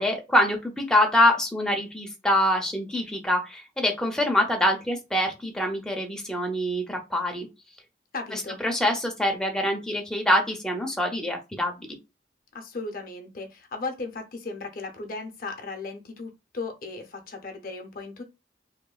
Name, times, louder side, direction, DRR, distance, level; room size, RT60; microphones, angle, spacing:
voice 1, 0.0-7.5 8.3-12.0, left 1 dB, 5° left, 0.5 m, -25 dB
voice 2, 8.1-8.6 12.5-18.2, left 3 dB, 50° left, 0.5 m, -36 dB
2.9 x 2.1 x 2.3 m
head